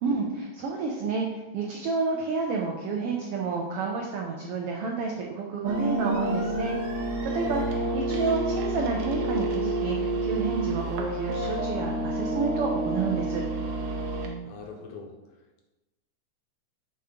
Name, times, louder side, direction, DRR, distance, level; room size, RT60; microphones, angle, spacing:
voice 1, 0.0-6.7 7.0-13.4, right 4 dB, 90° right, 0 dB, 1.3 m, -30 dB
sound 1, 5.7-14.3, right 2 dB, 70° right, 1.7 m, -29 dB
voice 2, 7.5-7.9 14.4-15.1, left 4 dB, 75° left, 2 dB, 1.7 m, -42 dB
6.6 x 3.4 x 5.0 m, 1.1 s
omnidirectional pair, 3.4 m